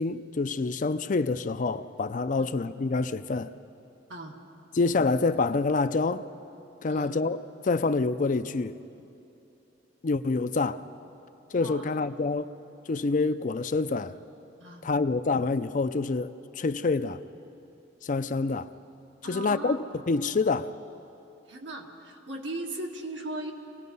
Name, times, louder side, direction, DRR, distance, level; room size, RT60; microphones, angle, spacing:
voice 1, 0.0-3.5 4.8-6.3 6.8-8.8 10.0-10.8 11.5-12.5 12.9-14.2 14.8-17.2 18.0-18.7 19.2-19.8 20.1-20.7, left 3 dB, 45° left, 0.5 m, -27 dB
voice 2, 11.5-12.0 14.6-14.9 19.2-19.8 21.5-23.5, right 1 dB, 85° right, 1.9 m, -38 dB
26.0 x 18.5 x 5.4 m
head